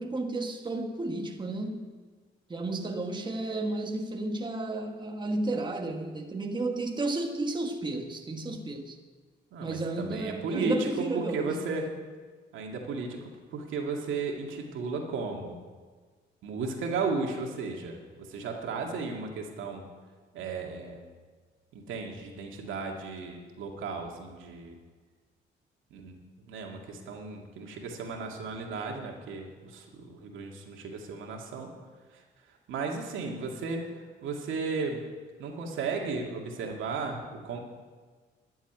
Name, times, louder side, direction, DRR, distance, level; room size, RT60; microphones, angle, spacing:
voice 1, 0.0-1.9 2.5-9.0 9.6-11.9, right 2 dB, 25° right, 1.3 m, -32 dB
voice 2, 9.5-11.9 12.5-15.6 16.4-19.8 20.3-21.0 21.7-24.8 25.9-26.2 26.4-31.7 32.1-32.2 32.7-35.0 35.4-37.6, right 4 dB, 80° right, 2.2 m, -35 dB
12.5 x 7.2 x 9.7 m
cardioid pair, 90°, 20 cm